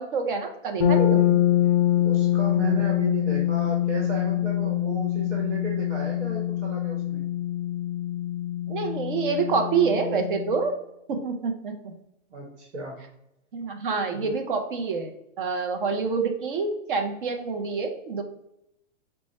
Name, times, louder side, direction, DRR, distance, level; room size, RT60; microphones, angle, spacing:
voice 1, 0.0-1.4 8.7-10.7 11.1-12.0 13.5-18.2, right 5 dB, 45° right, 5 dB, 0.6 m, -27 dB
sound 1, 0.8-10.6, left 12 dB, 25° left, 0.4 m, -24 dB
voice 2, 1.9-7.3 12.3-13.0 14.1-14.3, right 2 dB, 70° right, -1 dB, 1.3 m, -34 dB
4.5 x 2.2 x 4.1 m, 0.85 s
hypercardioid pair, 165°, 37 cm